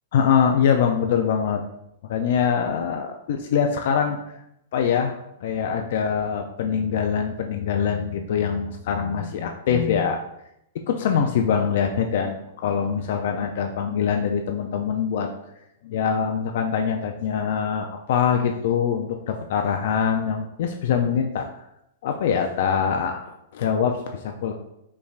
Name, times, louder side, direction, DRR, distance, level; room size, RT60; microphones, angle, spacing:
voice 1, 0.1-1.6 2.1-4.2 4.7-10.2 10.9-15.3 15.8-21.5 22.0-24.5, left 7 dB, 55° left, 4 dB, 0.3 m, -23 dB
5.2 x 3.3 x 2.4 m, 0.81 s
supercardioid pair, 165°, 0 cm